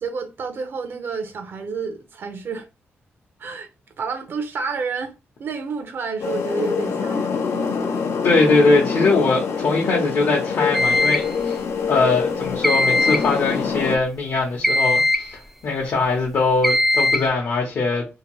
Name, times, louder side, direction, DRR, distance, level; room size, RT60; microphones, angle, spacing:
voice 1, 0.0-2.7 3.4-3.7 4.0-7.9, right 4 dB, 55° right, 0.5 m, -30 dB
sound 1, 6.2-14.0, left 5 dB, 90° left, 0.5 m, -25 dB
voice 2, 8.2-11.6 11.9-18.1, left 3 dB, 60° left, 0.8 m, -21 dB
sound 2, 10.7-11.3 12.6-13.3 14.6-15.3 16.6-17.3, left 2 dB, ahead, 0.3 m, -19 dB
2.8 x 2.6 x 3.0 m
wide cardioid pair, 130°, 4 cm